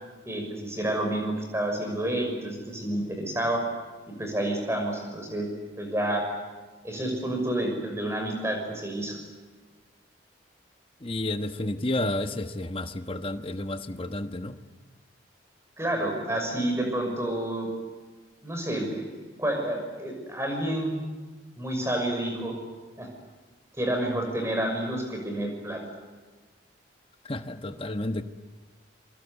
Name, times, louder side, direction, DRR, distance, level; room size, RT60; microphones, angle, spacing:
voice 1, 0.3-3.6 4.2-5.5 5.8-6.3 6.8-9.2 15.8-17.7 18.4-19.0 19.4-20.9 21.6-22.6 23.0-23.1 23.8-25.8, right 1 dB, 15° right, 2 dB, 6.1 m, -29 dB
voice 2, 11.0-14.6 27.2-28.2, left 1 dB, 30° left, 8 dB, 1.2 m, -31 dB
26.5 x 24.5 x 8.3 m, 1.3 s
head